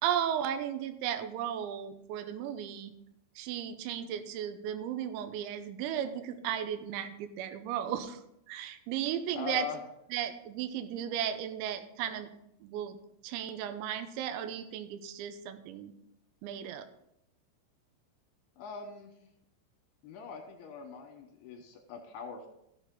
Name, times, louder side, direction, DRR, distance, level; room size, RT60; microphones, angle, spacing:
voice 1, 0.0-2.9 3.4-8.2 8.5-9.7 10.1-12.3 12.6-13.0 13.2-15.9 16.4-16.9, right 10 dB, 80° right, 9 dB, 2.9 m, -35 dB
voice 2, 9.3-9.8 18.6-19.1 20.0-22.5, left 6 dB, 70° left, 2 dB, 2.6 m, -41 dB
13.5 x 7.0 x 3.7 m, 0.80 s
omnidirectional pair, 5.7 m